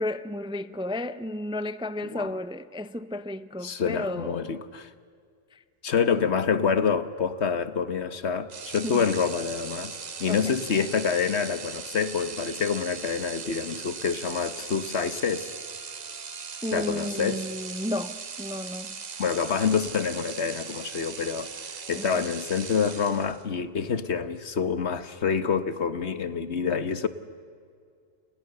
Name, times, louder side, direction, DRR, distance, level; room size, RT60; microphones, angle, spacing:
voice 1, 0.0-4.6 5.5-5.6 8.8-9.1 10.3-10.5 16.6-18.9 22.0-22.1, left 1 dB, 5° right, 0.5 m, -33 dB
voice 2, 3.6-4.9 5.8-15.5 16.7-17.5 19.2-21.5 21.9-27.1, left 6 dB, 65° left, 1.5 m, -27 dB
sound 1, 8.5-23.5, right 5 dB, 40° right, 1.0 m, -39 dB
29.5 x 29.0 x 6.9 m
omnidirectional pair, 1.2 m